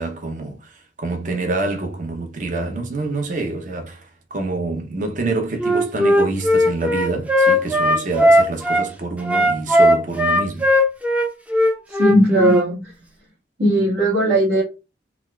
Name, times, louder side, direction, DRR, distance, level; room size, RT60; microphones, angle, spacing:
voice 1, 0.0-10.7, right 2 dB, 45° right, 0.6 m, -26 dB
Wind instrument woodwind instrument, 5.6-8.9 9.2-12.6, equal, 10° right, 0.4 m, -17 dB
voice 2, 11.9-12.8 13.6-14.6, equal, 70° right, 1.6 m, -17 dB
3.9 x 2.4 x 2.3 m
head